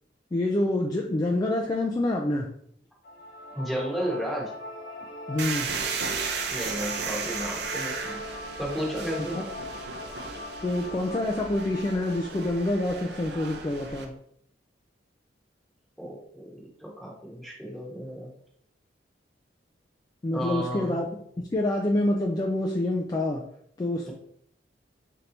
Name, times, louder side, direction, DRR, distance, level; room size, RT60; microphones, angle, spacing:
voice 1, 0.3-2.5 5.3-5.7 10.6-14.1 20.2-21.1 21.4-23.4 23.8-24.1, left 1 dB, 20° left, -1 dB, 0.3 m, -27 dB
sound 1, 3.0-14.1, left 1 dB, 55° left, 0.9 m, -41 dB
voice 2, 3.5-4.5 6.5-8.2 8.6-9.4 16.0-18.3 20.3-21.0, equal, ahead, -3 dB, 1.0 m, -33 dB
sound 2, 5.4-14.1, right 5 dB, 60° right, 0.5 m, -35 dB
3.3 x 2.8 x 3.9 m, 0.68 s
head